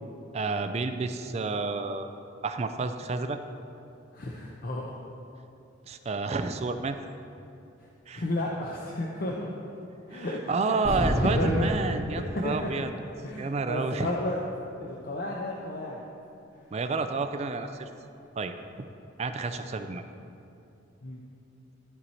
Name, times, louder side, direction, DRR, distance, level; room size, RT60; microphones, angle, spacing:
voice 1, 0.3-2.1 2.4-3.4 5.9-7.0 8.1-8.2 10.1-12.9 13.4-14.1 16.7-17.9 18.4-18.5 19.2-20.0, right 3 dB, 35° right, 8 dB, 0.3 m, -30 dB
voice 2, 4.1-4.9 8.1-9.5 10.1-11.7 12.1-12.8 13.2-14.4 14.8-16.0 18.2-18.3 19.6-19.7 21.0-21.2, left 1 dB, 50° left, -2 dB, 0.6 m, -33 dB
sound 1, 10.8-12.8, equal, 10° right, 0.9 m, -29 dB
12.5 x 4.5 x 4.2 m, 2.7 s
head